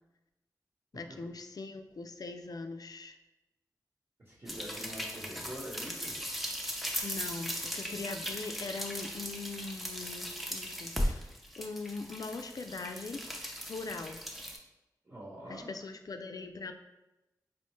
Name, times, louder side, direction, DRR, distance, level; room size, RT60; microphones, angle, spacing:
voice 1, 0.9-3.2 7.0-13.2 13.7-14.2 15.5-16.7, left 3 dB, 60° left, 7 dB, 0.3 m, -41 dB
voice 2, 4.2-6.2 15.0-15.7, equal, 45° right, -6 dB, 1.2 m, -45 dB
sound 1, 4.5-14.6, equal, ahead, 0.6 m, -38 dB
4.3 x 2.1 x 3.1 m, 0.97 s
cardioid pair, 45°, 7 cm